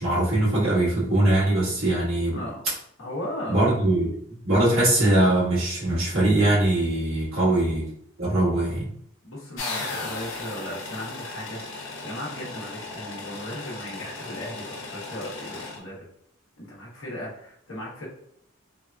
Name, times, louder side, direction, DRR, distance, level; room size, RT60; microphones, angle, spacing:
voice 1, 0.0-2.4 3.5-7.8 8.2-8.9, right 1 dB, 85° right, -7 dB, 1.4 m, -22 dB
voice 2, 2.3-2.6 3.0-3.6 7.3-7.6 9.2-16.1 16.6-18.1, left 1 dB, 90° left, -4 dB, 1.0 m, -37 dB
sound 1, 9.6-15.8, left 3 dB, 70° left, 0.7 m, -36 dB
3.4 x 2.5 x 2.2 m, 0.70 s
head